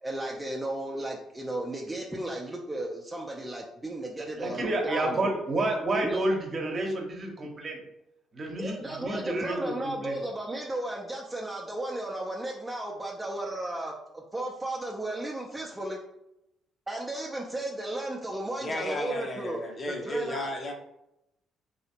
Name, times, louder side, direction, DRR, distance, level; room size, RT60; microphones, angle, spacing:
voice 1, 0.0-5.3 6.0-6.2 8.6-16.0 16.9-19.7 20.0-20.5, right 1 dB, 15° right, -1 dB, 0.5 m, -34 dB
voice 2, 4.2-7.8 8.3-10.2, right 2 dB, 40° right, 1 dB, 0.8 m, -30 dB
voice 3, 18.6-20.7, left 1 dB, 40° left, 2 dB, 0.7 m, -33 dB
3.2 x 2.8 x 2.8 m, 0.84 s
figure-of-eight pair, 45°, 0 cm